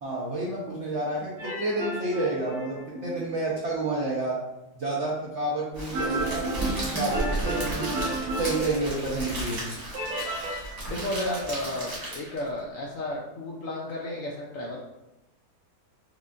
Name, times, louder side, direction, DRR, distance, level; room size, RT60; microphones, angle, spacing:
voice 1, 0.0-4.4 4.7-7.9 8.3-9.7, right 2 dB, 65° right, -5 dB, 0.7 m, -30 dB
sound 1, 1.4-3.3 5.9-9.3 9.9-10.7, right 2 dB, 85° right, 2.0 m, -32 dB
Crackle, 5.7-12.5, right 1 dB, 25° right, 1.0 m, -34 dB
voice 2, 10.9-14.8, left 1 dB, 70° left, -3 dB, 0.8 m, -33 dB
4.8 x 2.3 x 2.4 m, 0.94 s
omnidirectional pair, 1.8 m